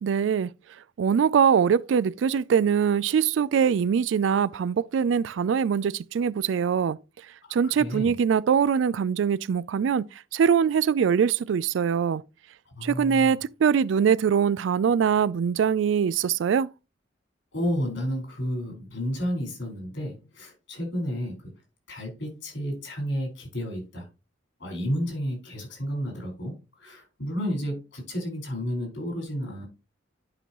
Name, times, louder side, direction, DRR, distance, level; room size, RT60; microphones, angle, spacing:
voice 1, 0.0-0.5 1.0-7.0 7.5-12.2 12.8-16.7, right 7 dB, 75° right, 0.3 m, -23 dB
voice 2, 7.6-8.1 12.7-13.4 17.5-21.5 21.9-24.1 24.6-29.7, equal, 75° left, 4.8 m, -31 dB
11.0 x 5.4 x 3.0 m
head